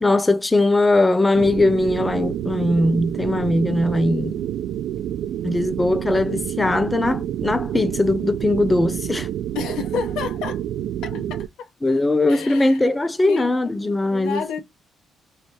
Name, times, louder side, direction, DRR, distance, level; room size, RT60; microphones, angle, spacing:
voice 1, 0.0-4.4 5.4-9.3 11.1-11.2 11.8-14.6, left 2 dB, 15° left, 0.5 m, -20 dB
sound 1, 1.3-11.5, right 11 dB, 80° right, 0.3 m, -28 dB
voice 2, 9.5-10.6 11.0-11.7 12.3-12.8 13.3-13.7 14.1-14.6, left 6 dB, 90° left, 0.9 m, -30 dB
3.2 x 2.6 x 4.3 m
cardioid pair, 90°, 0 cm